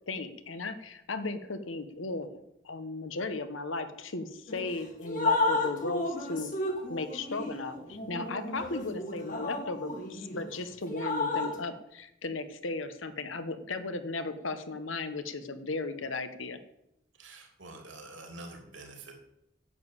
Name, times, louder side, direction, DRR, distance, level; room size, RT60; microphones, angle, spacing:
voice 1, 0.1-6.5 6.9-16.6, left 3 dB, 80° left, 10 dB, 1.2 m, -36 dB
Drip, 4.5-4.7 5.0-10.5 10.9-11.6, left 2 dB, 40° left, 2.1 m, -32 dB
voice 2, 17.2-19.1, right 2 dB, 75° right, 3 dB, 3.0 m, -46 dB
11.0 x 7.2 x 8.3 m, 0.80 s
head